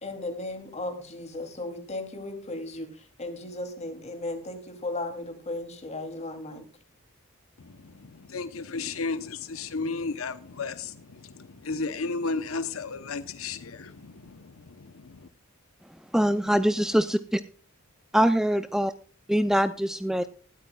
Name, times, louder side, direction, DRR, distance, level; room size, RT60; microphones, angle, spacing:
voice 1, 0.0-2.9 3.2-6.6, left 2 dB, 35° left, 2.8 m, -35 dB
voice 2, 7.6-15.3, left 4 dB, 80° left, 0.8 m, -34 dB
voice 3, 16.1-17.2 18.1-18.9 19.3-20.3, equal, ahead, 0.4 m, -23 dB
19.5 x 13.0 x 2.3 m
head